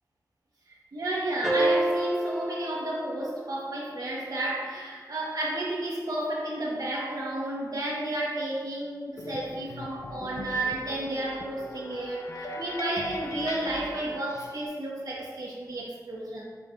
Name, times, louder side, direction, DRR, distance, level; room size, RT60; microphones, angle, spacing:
voice 1, 0.9-16.4, right 1 dB, 65° right, -4 dB, 0.7 m, -32 dB
sound 1, 1.4-3.7, right 1 dB, 5° right, 0.9 m, -28 dB
sound 2, 9.2-14.7, left 1 dB, 50° left, 0.4 m, -40 dB
5.1 x 2.3 x 3.6 m, 1.4 s
wide cardioid pair, 70°, 7 cm